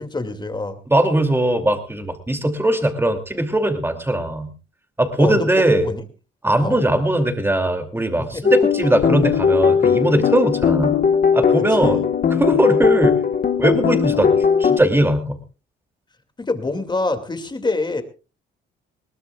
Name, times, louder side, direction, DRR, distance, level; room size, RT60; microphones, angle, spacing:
voice 1, 0.0-0.8 5.2-6.1 6.6-6.8 8.2-8.4 11.6-12.0 16.4-18.0, left 3 dB, 20° left, 8 dB, 2.4 m, -26 dB
voice 2, 0.9-4.5 5.0-5.9 6.4-11.0 11.3-12.0 12.3-13.2 13.6-14.3 14.6-15.4, right 1 dB, 10° right, 6 dB, 2.7 m, -19 dB
sound 1, 8.4-14.8, left 6 dB, 45° left, 1.4 m, -18 dB
21.5 x 18.5 x 2.4 m, 0.33 s
cardioid pair, 90°, 20 cm